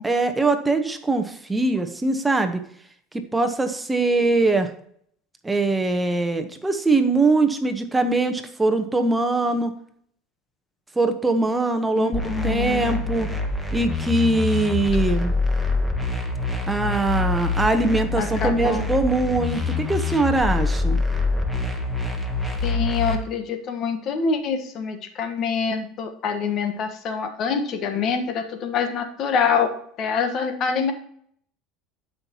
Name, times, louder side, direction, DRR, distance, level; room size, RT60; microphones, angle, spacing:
voice 1, 0.0-2.6 3.3-4.7 5.4-9.7 11.0-13.3 13.7-15.3 16.7-21.0, right 2 dB, 15° right, 7 dB, 1.1 m, -22 dB
voice 2, 12.0-13.0 18.2-18.9 22.6-29.7 30.0-30.9, left 6 dB, 50° left, 7 dB, 1.3 m, -25 dB
sound 1, 12.1-23.2, left 3 dB, 5° left, 1.6 m, -25 dB
11.5 x 5.7 x 3.0 m, 0.64 s
hypercardioid pair, 90°, 0 cm